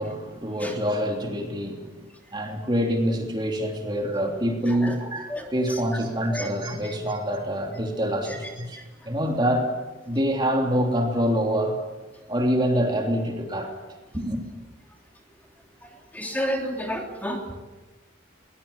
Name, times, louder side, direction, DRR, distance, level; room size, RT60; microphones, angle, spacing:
voice 1, 0.0-2.1 2.3-9.7 10.1-11.8 12.3-13.7 14.1-14.4, equal, 25° right, 2 dB, 3.1 m, -26 dB
voice 2, 16.1-17.5, equal, 10° left, 1 dB, 3.3 m, -29 dB
22.0 x 20.5 x 8.5 m, 1.2 s
head